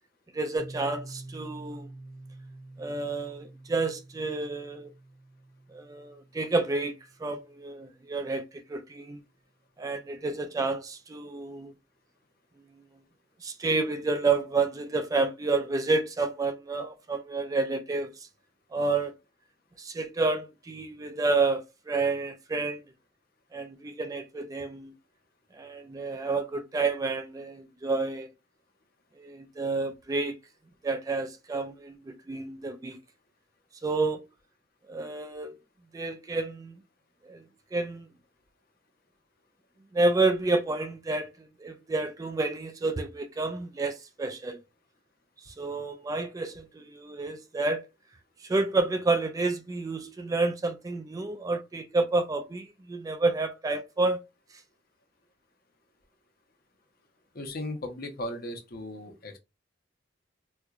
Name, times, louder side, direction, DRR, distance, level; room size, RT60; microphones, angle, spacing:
voice 1, 0.3-1.9 2.8-4.9 5.7-6.9 7.2-9.2 9.8-11.7 13.4-18.1 18.7-19.1 19.8-22.8 23.5-24.9 25.5-28.3 29.2-30.4 30.8-33.0 33.8-34.2 34.9-35.5 35.9-36.8 37.2-37.4 37.7-38.1 39.9-44.6 45.5-47.8 48.4-54.2, right 3 dB, 20° right, 0.3 m, -29 dB
Piano, 0.6-8.0, right 2 dB, 45° right, 0.8 m, -48 dB
voice 2, 57.3-59.4, left 1 dB, 55° left, 0.8 m, -37 dB
4.3 x 2.3 x 2.4 m
head